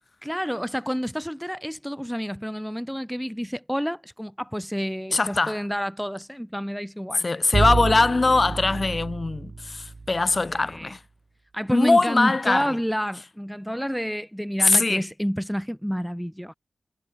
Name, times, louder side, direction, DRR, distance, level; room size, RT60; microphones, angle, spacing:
voice 1, 0.2-7.3 10.7-10.9 11.5-16.5, equal, ahead, 1.0 m, -29 dB
voice 2, 5.1-5.6 7.2-11.0 11.7-12.7 14.6-15.0, left 3 dB, 40° left, 2.1 m, -21 dB
Bowed string instrument, 7.5-10.6, right 3 dB, 45° right, 2.9 m, -28 dB
wide cardioid pair, 80°, 0 cm